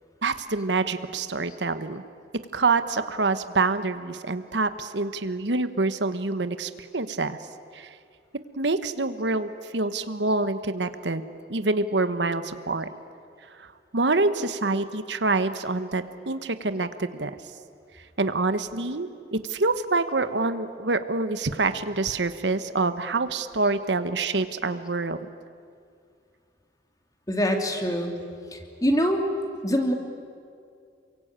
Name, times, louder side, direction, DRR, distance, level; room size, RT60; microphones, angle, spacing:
voice 1, 0.2-2.0 2.3-7.4 7.7-7.9 8.6-11.2 11.5-12.9 13.9-17.3 18.2-25.2 29.5-29.6, right 3 dB, 80° right, 11 dB, 1.2 m, -26 dB
voice 2, 27.3-28.1 28.5-29.2 29.6-29.9, equal, 20° left, 4 dB, 2.8 m, -24 dB
28.5 x 23.5 x 8.9 m, 2.3 s
head